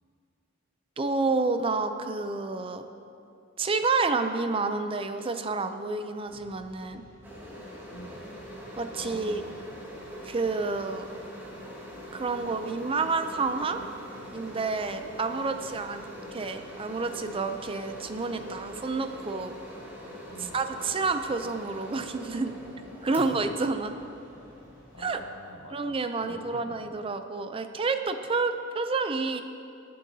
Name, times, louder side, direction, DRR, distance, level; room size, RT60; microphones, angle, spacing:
voice 1, 1.0-2.8 3.6-7.0 8.8-9.4 10.2-11.1 12.1-13.8 14.3-16.1 16.3-19.5 20.4-22.6 23.0-23.9 25.0-25.2 25.7-29.4, right 3 dB, 25° right, 8 dB, 0.5 m, -29 dB
sound 1, 6.3-25.2, equal, 20° left, 2.9 m, -56 dB
sound 2, 7.2-25.7, equal, 10° right, 1.9 m, -44 dB
voice 2, 7.9-8.3 8.9-9.9 20.3-20.6 23.0-23.4 24.9-26.9, left 1 dB, 85° left, 3 dB, 1.1 m, -46 dB
22.5 x 7.6 x 2.8 m, 2.6 s
head